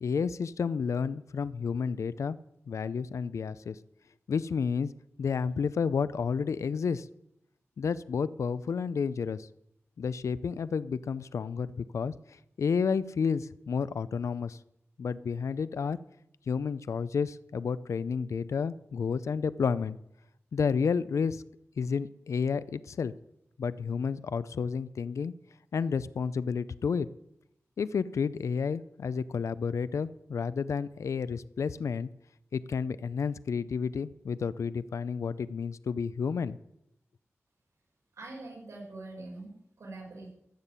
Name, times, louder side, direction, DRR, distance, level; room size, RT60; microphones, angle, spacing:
voice 1, 0.0-2.4 2.7-3.8 4.3-4.9 5.2-7.1 7.8-9.5 10.0-12.1 12.6-14.6 15.0-16.0 16.5-20.0 20.5-21.4 21.8-23.1 23.6-25.3 25.7-27.1 27.8-32.1 32.5-36.6, left 6 dB, 85° left, 16 dB, 0.5 m, -31 dB
voice 2, 38.1-40.3, right 2 dB, 75° right, -1 dB, 5.4 m, -44 dB
14.0 x 7.4 x 8.1 m, 0.79 s
wide cardioid pair, 100°, 5 cm